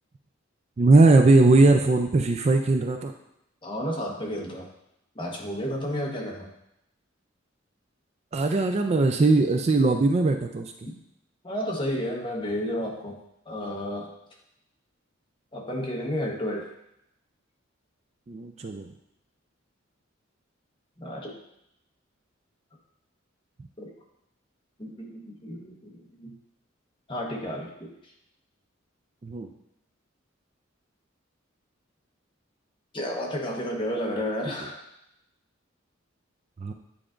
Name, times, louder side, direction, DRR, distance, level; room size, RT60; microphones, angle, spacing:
voice 1, 0.8-3.1 8.3-10.7 18.3-18.9 29.2-29.5 36.6-36.7, right 3 dB, 35° right, 5 dB, 0.3 m, -20 dB
voice 2, 3.6-4.7 5.1-6.5 10.9-11.0 11.4-13.2 13.5-14.1 15.5-16.7 21.0-21.4 23.8-23.9 24.8-26.3 27.1-27.9 32.9-34.8, equal, 25° left, -1 dB, 1.1 m, -32 dB
8.8 x 4.8 x 2.5 m, 0.80 s
head